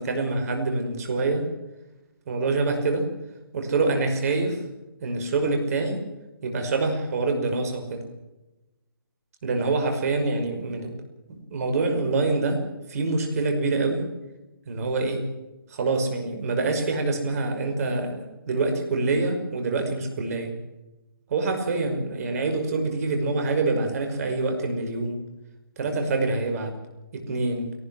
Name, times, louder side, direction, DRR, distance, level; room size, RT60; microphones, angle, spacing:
voice 1, 0.0-1.5 2.3-3.1 3.5-4.6 5.0-6.0 6.4-8.0 9.4-11.0 11.3-12.6 12.9-14.1 14.7-15.3 15.7-20.5 21.3-25.2 25.8-26.7 27.1-27.7, right 3 dB, 40° right, 5 dB, 5.7 m, -26 dB
22.5 x 19.0 x 7.7 m, 1.0 s
figure-of-eight pair, 150°, 12 cm